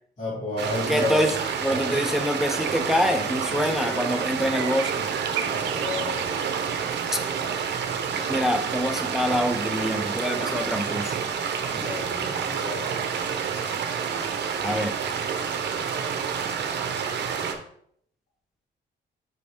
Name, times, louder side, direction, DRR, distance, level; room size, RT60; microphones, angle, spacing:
voice 1, 0.2-1.3 1.6-2.0 5.4-6.4 11.7-13.0, left 2 dB, 40° left, -9 dB, 2.8 m, -32 dB
sound 1, 0.6-17.5, right 6 dB, 60° right, 0.9 m, -29 dB
voice 2, 0.9-1.3 1.6-5.0 7.1-7.2 8.3-11.2 14.6-14.9, equal, ahead, 7 dB, 0.5 m, -25 dB
sound 2, 2.5-7.7, right 9 dB, 80° right, 0.6 m, -36 dB
6.1 x 4.7 x 3.4 m, 0.66 s
cardioid pair, 90°, 20 cm